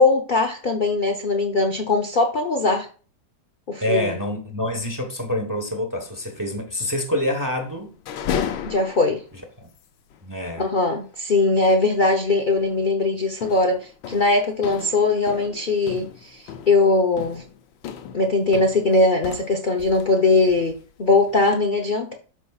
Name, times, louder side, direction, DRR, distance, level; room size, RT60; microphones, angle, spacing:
voice 1, 0.0-2.9 3.7-4.2 8.6-9.2 10.6-17.4 18.1-22.1, left 3 dB, 65° left, 0.4 m, -20 dB
voice 2, 3.8-7.9 9.6-9.7 10.2-10.7, left 1 dB, 15° right, 0.7 m, -26 dB
sound 1, 7.9-9.3 9.8-9.9 10.1-10.3 11.9-12.2 12.6-12.8 13.4-20.2 20.5-21.4, left 8 dB, 85° left, 1.5 m, -34 dB
12.5 x 4.6 x 2.4 m
omnidirectional pair, 2.0 m